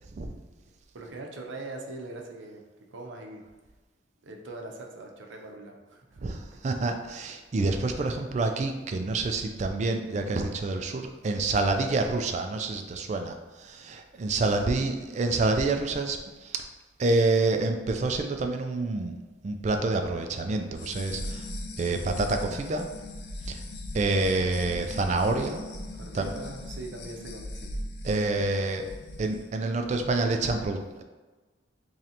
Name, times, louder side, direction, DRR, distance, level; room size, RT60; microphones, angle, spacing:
voice 1, 0.9-2.6 2.9-3.4 4.2-6.2 6.5-6.6 14.1-14.3 14.6-14.8 25.3-25.6 26.0-27.7, right 2 dB, 90° right, 2 dB, 0.6 m, -42 dB
voice 2, 6.2-16.6 17.0-19.2 19.4-21.5 21.8-22.9 23.5-23.6 23.9-25.7 26.1-26.3 28.0-28.9 29.2-31.0, right 3 dB, 40° right, 5 dB, 0.3 m, -27 dB
sound 1, 20.8-29.4, left 1 dB, 60° left, 0.5 m, -38 dB
3.8 x 3.2 x 2.8 m, 1.2 s
head